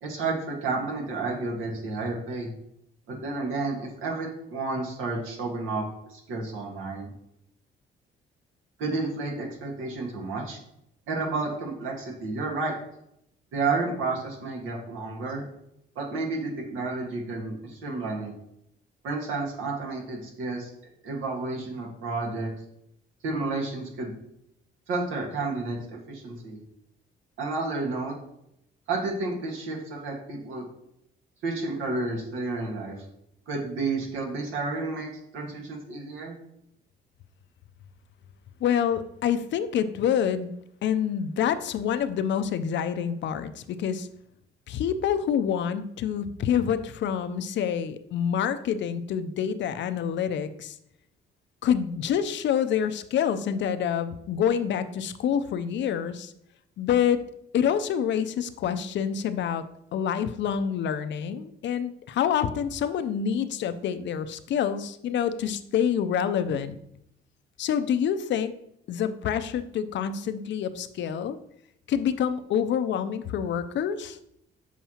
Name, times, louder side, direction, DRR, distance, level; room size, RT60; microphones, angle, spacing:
voice 1, 0.0-2.5 3.1-5.8 6.1-7.1 8.8-10.6 11.1-12.7 13.5-15.4 15.9-18.3 19.0-20.7 21.0-22.5 23.2-24.1 24.9-26.6 27.4-28.1 28.9-30.6 31.4-33.0 33.5-35.1 35.3-36.4, right 3 dB, 85° right, -1 dB, 1.6 m, -31 dB
voice 2, 38.6-40.5 40.8-44.1 44.7-50.8 51.6-56.3 56.8-57.2 57.5-59.6 59.9-66.8 67.6-68.5 68.9-71.4 71.9-74.2, left 8 dB, 65° left, 11 dB, 0.5 m, -27 dB
7.1 x 4.6 x 2.9 m, 0.76 s
cardioid pair, 90°, 20 cm